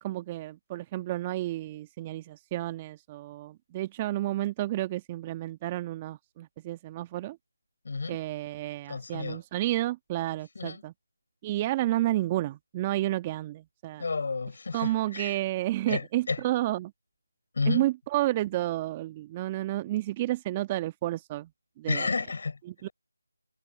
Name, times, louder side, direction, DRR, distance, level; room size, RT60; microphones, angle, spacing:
voice 1, 0.0-7.4 8.1-10.9 11.4-14.0 14.7-16.9 17.7-21.5 21.8-22.1 22.6-22.9, right 15 dB, 15° right, 1.3 m, -31 dB
voice 2, 7.8-8.2 8.9-9.4 10.6-10.8 14.0-15.3 15.9-16.4 17.5-17.9 21.9-22.6, left 4 dB, 45° left, 5.9 m, -31 dB
figure-of-eight pair, 165°, 0 cm